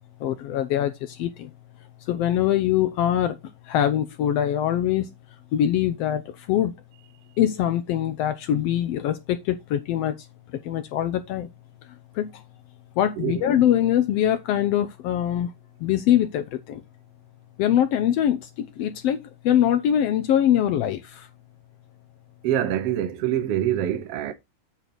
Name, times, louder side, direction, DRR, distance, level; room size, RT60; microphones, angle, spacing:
voice 1, 0.2-1.5 2.1-3.4 3.7-5.1 5.5-6.7 7.4-10.2 10.5-11.5 12.1-12.4 13.0-15.5 15.8-16.8 17.6-21.3, left 11 dB, 90° left, 1.4 m, -23 dB
voice 2, 13.2-13.5 22.4-24.3, right 11 dB, 65° right, 1.7 m, -25 dB
8.7 x 4.0 x 6.1 m
omnidirectional pair, 3.7 m